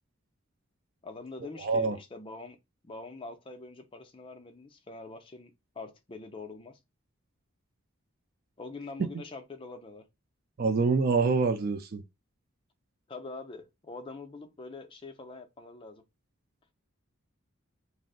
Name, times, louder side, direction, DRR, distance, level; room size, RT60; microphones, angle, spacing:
voice 1, 1.0-2.6 2.8-6.8 8.6-10.1 13.1-16.0, left 3 dB, 25° left, 0.4 m, -44 dB
voice 2, 1.6-2.0 10.6-12.0, right 4 dB, 45° right, 0.3 m, -26 dB
2.5 x 2.0 x 3.7 m
head